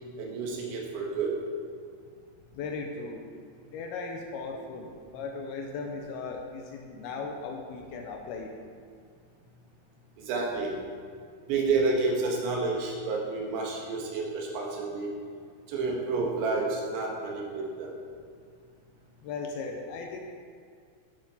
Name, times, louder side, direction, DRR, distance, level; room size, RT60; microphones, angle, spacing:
voice 1, 0.2-1.3 10.3-10.7 11.5-15.1 15.7-18.0, right 3 dB, 90° right, -1 dB, 3.8 m, -29 dB
voice 2, 2.5-3.2 3.7-8.5 19.2-20.2, left 4 dB, 80° left, 2 dB, 2.3 m, -37 dB
11.0 x 7.5 x 4.2 m, 2.1 s
omnidirectional pair, 5.1 m